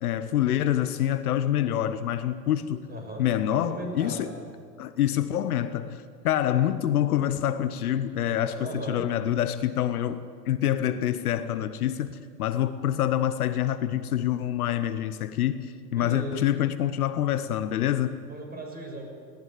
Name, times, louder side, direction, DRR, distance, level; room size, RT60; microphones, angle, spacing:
voice 1, 0.0-2.9 3.2-4.3 4.8-18.2, left 11 dB, 60° left, 12 dB, 1.1 m, -26 dB
voice 2, 2.9-3.2 3.5-4.4 8.6-9.0 15.9-16.5 18.3-19.1, right 1 dB, 20° right, 2 dB, 6.8 m, -37 dB
18.5 x 18.5 x 9.4 m, 2.1 s
figure-of-eight pair, 95°, 50 cm